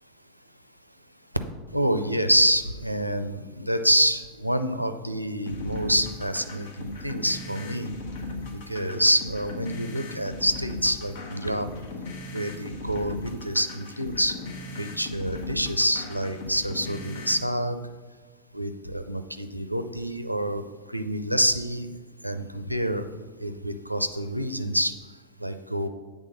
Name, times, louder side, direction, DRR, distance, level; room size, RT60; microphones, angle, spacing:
voice 1, 1.7-7.9 8.5-11.7 12.3-14.3 14.8-17.8 18.5-20.6 20.9-21.9 22.2-23.0 23.4-24.9 25.4-25.9, equal, 90° right, 9 dB, 0.4 m, -27 dB
sound 1, 5.5-17.5, left 2 dB, 50° left, 0.9 m, -38 dB
8.3 x 3.5 x 5.2 m, 1.4 s
figure-of-eight pair, 90°, 0 cm